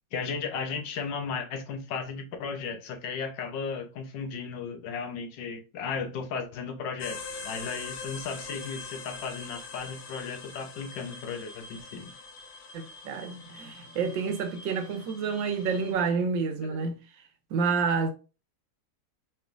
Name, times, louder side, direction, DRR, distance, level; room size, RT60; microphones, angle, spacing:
voice 1, 0.1-12.1 16.7-16.9, left 5 dB, 80° left, 1.5 m, -35 dB
sound 1, 7.0-15.9, left 4 dB, 65° left, 0.6 m, -43 dB
voice 2, 12.7-17.0 17.5-18.1, right 5 dB, 85° right, 1.4 m, -29 dB
4.9 x 3.4 x 2.5 m
omnidirectional pair, 2.0 m